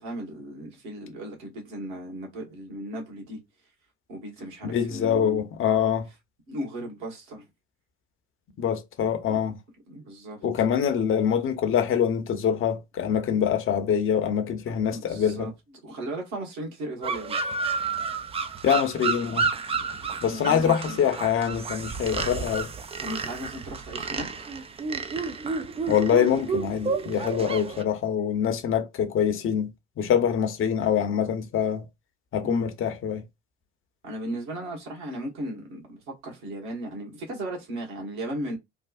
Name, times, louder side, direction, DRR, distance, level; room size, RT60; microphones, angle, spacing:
voice 1, 0.0-3.4 4.1-5.5 6.5-7.5 9.3-9.4 9.9-10.4 14.7-15.5 15.8-17.4 20.2-21.0 23.0-24.5 32.4-32.7 34.0-38.6, right 1 dB, 55° right, 1.6 m, -36 dB
voice 2, 4.6-6.1 8.6-9.6 10.4-15.5 18.6-19.5 20.2-22.7 25.9-29.7 30.0-31.9 32.3-33.2, left 8 dB, 35° left, 0.8 m, -24 dB
sound 1, 17.0-27.8, right 4 dB, 15° right, 0.4 m, -31 dB
3.4 x 2.3 x 2.5 m
figure-of-eight pair, 60°, 34 cm